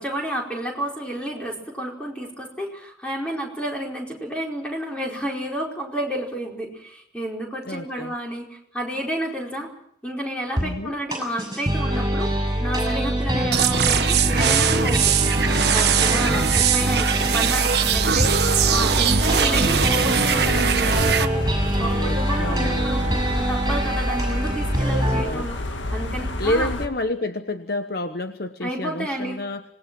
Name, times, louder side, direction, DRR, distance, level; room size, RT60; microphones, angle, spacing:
voice 1, 0.0-9.7 10.0-12.3 12.6-15.2 15.7-18.3 18.7-23.0 23.4-26.8 28.6-29.4, right 1 dB, 5° left, 0 dB, 4.8 m, -30 dB
voice 2, 7.6-8.1 10.6-11.0 13.3-13.6 16.3-16.4 21.7-23.5 24.9-25.5 26.4-29.6, left 1 dB, 55° left, 8 dB, 1.1 m, -29 dB
sound 1, 10.6-10.7 11.1-25.2, right 1 dB, 20° right, 6.3 m, -24 dB
sound 2, 13.5-21.3, right 7 dB, 60° right, 1.3 m, -21 dB
sound 3, 17.9-26.9, left 1 dB, 90° left, 2.1 m, -31 dB
26.5 x 19.5 x 6.2 m, 0.75 s
head